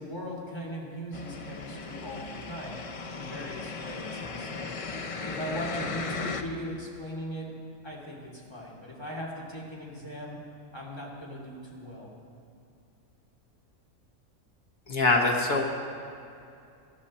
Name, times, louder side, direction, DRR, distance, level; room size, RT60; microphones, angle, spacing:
voice 1, 0.0-2.8 3.1-4.7 5.2-7.6 7.8-10.4 10.7-12.1, equal, 20° left, -4 dB, 2.7 m, -39 dB
sound 1, 1.1-6.4, left 4 dB, 40° left, 0.5 m, -37 dB
voice 2, 14.9-15.6, left 3 dB, 70° left, 1 dB, 1.8 m, -23 dB
18.5 x 12.0 x 4.3 m, 2.5 s
omnidirectional pair, 1.5 m